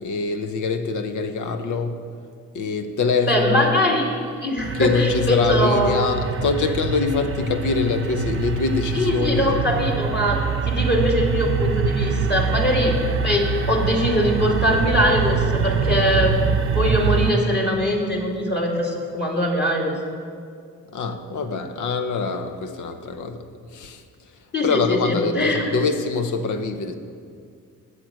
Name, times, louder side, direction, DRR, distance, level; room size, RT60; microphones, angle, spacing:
voice 1, 0.0-2.0 2.5-3.8 4.7-9.6 20.9-24.0 24.6-26.9, left 4 dB, 70° left, 7 dB, 0.9 m, -24 dB
voice 2, 3.3-4.1 4.4-6.0 8.9-10.4 10.7-12.9 13.2-16.4 16.7-20.0 24.5-25.7, left 1 dB, 35° left, -1 dB, 2.4 m, -22 dB
sound 1, 4.6-17.3, right 5 dB, 40° right, 0.7 m, -24 dB
8.5 x 6.7 x 7.7 m, 2.2 s
supercardioid pair, 60°, 31 cm